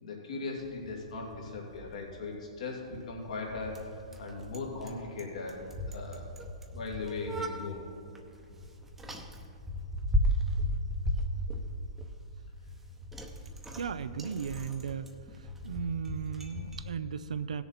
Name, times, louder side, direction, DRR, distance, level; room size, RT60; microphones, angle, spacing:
voice 1, 0.0-6.3 6.7-7.9 9.1-9.3, left 3 dB, 75° left, -1 dB, 2.3 m, -39 dB
Bicycle, 0.6-16.9, equal, 5° right, 0.8 m, -36 dB
voice 2, 13.7-15.1 15.6-17.6, right 7 dB, 90° right, 11 dB, 0.5 m, -35 dB
16.0 x 6.9 x 4.2 m, 2.7 s
hypercardioid pair, 150°, 4 cm